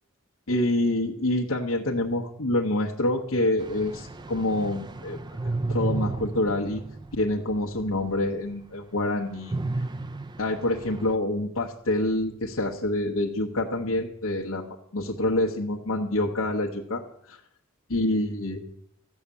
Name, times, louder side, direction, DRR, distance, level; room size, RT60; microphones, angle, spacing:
voice 1, 0.5-5.2 5.7-6.8 7.1-9.6 10.4-14.7 14.9-17.0 17.3-17.4 17.9-18.6, left 1 dB, 80° left, -1 dB, 1.1 m, -26 dB
sound 1, 3.6-7.9 8.3-8.4 9.5-11.1, right 2 dB, 20° right, 0.4 m, -33 dB
13.0 x 6.5 x 8.4 m, 0.73 s
head